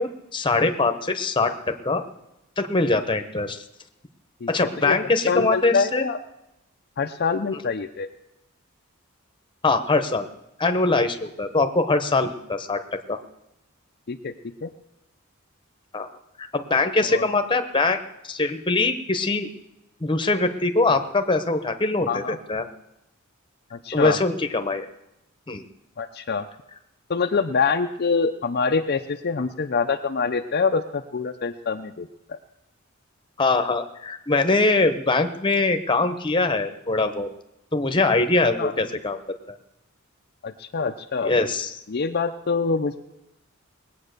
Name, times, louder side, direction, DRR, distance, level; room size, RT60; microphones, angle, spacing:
voice 1, 0.0-2.0 2.6-3.6 4.5-6.1 9.6-10.3 10.6-12.8 13.1-13.2 15.9-16.1 16.4-18.0 18.3-19.5 20.0-22.6 23.9-24.9 25.5-25.6 33.4-37.3 37.7-39.2 39.5-39.6 41.2-41.7, left 3 dB, 25° left, 7 dB, 1.0 m, -22 dB
voice 2, 4.8-6.2 7.0-8.1 14.1-14.3 14.6-14.7 17.1-17.3 22.1-22.4 23.7-24.2 26.0-26.5 27.1-32.4 38.5-38.7 40.4-41.3 41.9-43.0, left 5 dB, 50° left, 5 dB, 0.5 m, -25 dB
20.0 x 8.5 x 6.6 m, 0.88 s
head